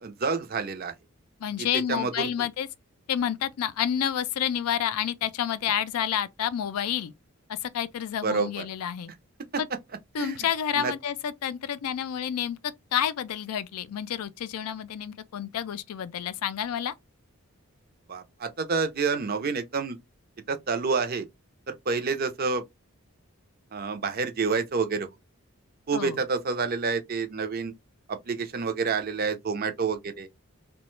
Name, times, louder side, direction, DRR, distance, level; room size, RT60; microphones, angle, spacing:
voice 1, 0.0-0.9 1.9-2.5 8.2-8.7 10.2-10.4 10.7-10.9 18.1-20.0 20.5-21.3 21.7-22.6 23.7-25.1 25.9-27.7 28.1-30.3, right 4 dB, 45° right, 0.5 m, -28 dB
voice 2, 1.4-2.7 3.1-7.1 7.5-9.1 9.6-9.7 10.1-16.9 25.9-26.2, left 9 dB, 85° left, 0.4 m, -29 dB
2.9 x 2.2 x 3.0 m
head